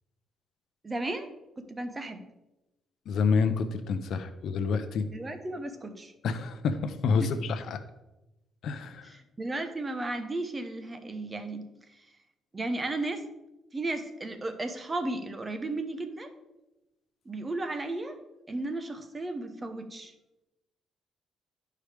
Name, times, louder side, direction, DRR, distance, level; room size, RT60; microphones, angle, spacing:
voice 1, 0.8-1.3 1.6-2.2 5.1-6.1 7.2-7.3 9.0-12.1 12.5-13.2 13.7-16.3 17.2-18.2 18.5-20.1, right 2 dB, 25° right, 8 dB, 0.9 m, -34 dB
voice 2, 3.1-5.1 6.2-7.8 8.6-9.1, left 5 dB, 70° left, 11 dB, 0.6 m, -28 dB
11.5 x 4.8 x 3.4 m, 0.97 s
cardioid pair, 90°, 0 cm